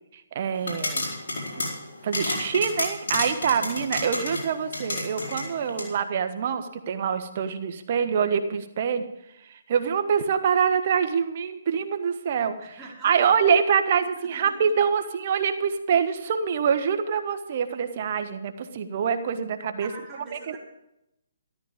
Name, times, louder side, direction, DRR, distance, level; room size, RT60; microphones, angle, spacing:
voice 1, 0.1-1.1 1.6-1.7 2.0-9.0 9.4-12.8 13.0-19.9 20.3-20.6, right 7 dB, 50° right, 8 dB, 1.5 m, -25 dB
sound 1, 0.6-5.9, left 2 dB, 75° left, 4.6 m, -31 dB
voice 2, 3.5-3.8 12.6-13.1 14.1-14.5 19.8-20.6, right 3 dB, 5° right, -8 dB, 5.0 m, -45 dB
13.5 x 13.0 x 5.2 m, 0.86 s
hypercardioid pair, 145°, 0 cm